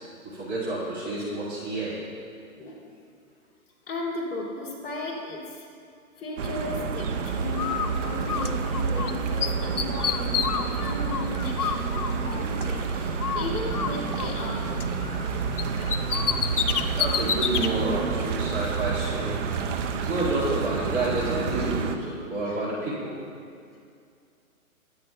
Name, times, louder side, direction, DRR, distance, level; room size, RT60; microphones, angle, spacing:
voice 1, 0.2-2.0 16.9-19.4 19.7-23.2, right 2 dB, 20° right, -7 dB, 2.2 m, -29 dB
voice 2, 3.9-5.9 6.2-7.7 8.0-14.7 22.5-22.6, left 2 dB, 20° left, -6 dB, 2.7 m, -36 dB
sound 1, 6.4-22.0, right 5 dB, 55° right, 0.9 m, -29 dB
Bird, 7.5-9.1 9.4-12.9 13.2-15.3 15.6-17.7, left 7 dB, 85° left, 0.7 m, -29 dB
22.0 x 9.5 x 2.3 m, 2.3 s
hypercardioid pair, 140°, 44 cm